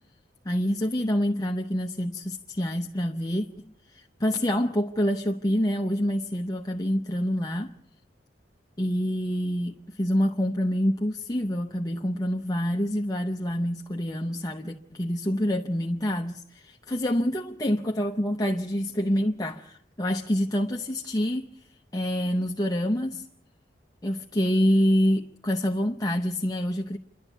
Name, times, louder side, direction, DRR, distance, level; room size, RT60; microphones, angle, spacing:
voice 1, 0.4-7.7 8.8-21.5 21.9-23.2 24.0-27.0, equal, 20° left, 0.7 m, -27 dB
28.0 x 12.0 x 8.2 m
head